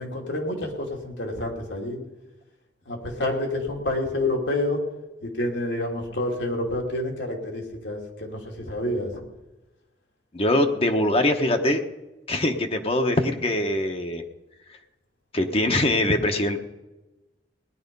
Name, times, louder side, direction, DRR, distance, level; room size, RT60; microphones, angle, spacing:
voice 1, 0.0-2.0 2.9-4.8 5.2-9.2, left 1 dB, 80° left, 1 dB, 2.8 m, -28 dB
voice 2, 10.3-11.8 12.3-14.2 15.3-16.6, left 1 dB, 30° left, 5 dB, 1.1 m, -22 dB
18.5 x 11.0 x 5.4 m, 1.1 s
head